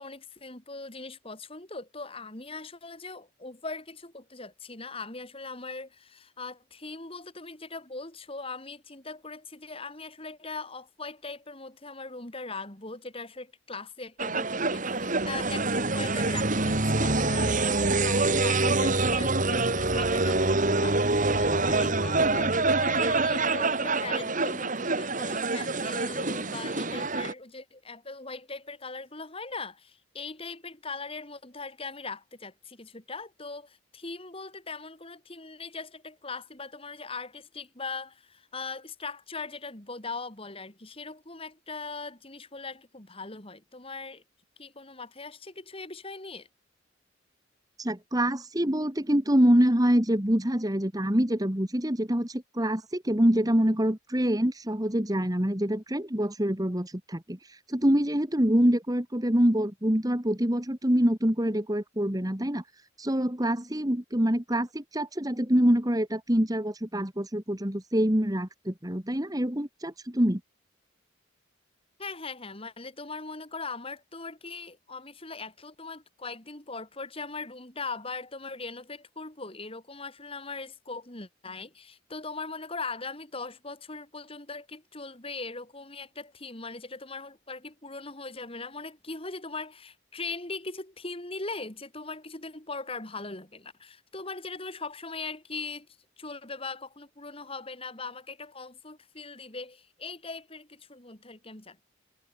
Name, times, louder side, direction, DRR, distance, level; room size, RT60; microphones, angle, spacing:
voice 1, 0.0-44.2 44.6-46.5 72.0-95.9 96.2-101.8, left 3 dB, 30° left, 3.3 m, -40 dB
sound 1, 14.2-27.3, right 3 dB, 40° right, 2.4 m, -26 dB
voice 2, 47.8-57.4 57.7-62.6 63.0-70.4, equal, 20° right, 2.0 m, -25 dB
head